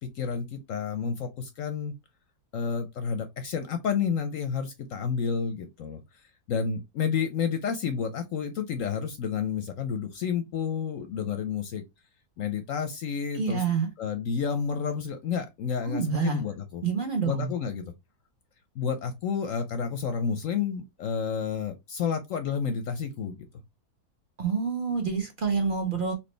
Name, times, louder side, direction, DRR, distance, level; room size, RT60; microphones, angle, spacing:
voice 1, 0.0-1.9 2.5-11.8 12.4-13.6 14.0-16.8 17.3-17.9 18.7-23.5, left 6 dB, 70° left, 0.9 m, -30 dB
voice 2, 13.3-13.9 15.8-16.4 16.8-17.5 24.4-26.1, right 5 dB, 40° right, 0.9 m, -27 dB
4.3 x 2.9 x 3.2 m
omnidirectional pair, 1.7 m